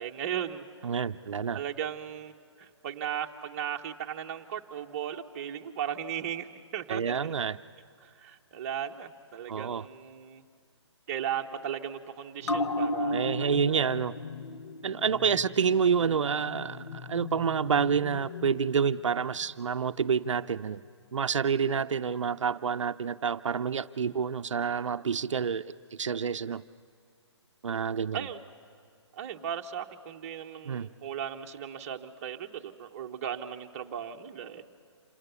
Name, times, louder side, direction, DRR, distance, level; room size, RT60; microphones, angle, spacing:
voice 1, 0.0-0.6 1.5-6.5 6.7-7.3 8.0-10.4 11.1-14.0 28.1-28.4 29.1-34.6, right 9 dB, 30° right, 3 dB, 0.9 m, -36 dB
voice 2, 0.8-1.6 6.9-7.6 9.5-9.9 13.1-14.1 14.8-20.8 21.1-25.6 25.9-26.6 27.6-28.3 30.7-30.9, right 6 dB, 90° right, 11 dB, 0.5 m, -28 dB
sound 1, 12.4-19.4 19.7-19.8, left 2 dB, 75° left, 0.9 m, -36 dB
27.0 x 18.0 x 6.9 m, 2.2 s
hypercardioid pair, 160°, 15 cm